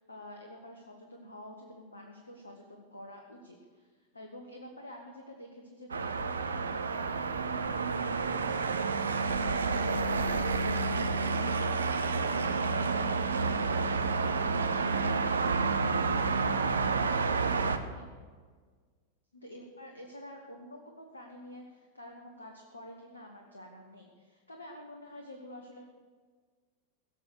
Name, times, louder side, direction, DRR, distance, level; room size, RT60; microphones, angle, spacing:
voice 1, 0.1-7.1 7.5-18.1 19.3-25.9, left 1 dB, 80° left, 1 dB, 1.3 m, -48 dB
sound 1, 5.9-17.8, right 4 dB, 75° right, 0.7 m, -29 dB
17.5 x 6.9 x 6.6 m, 1.5 s
figure-of-eight pair, 90°, 0 cm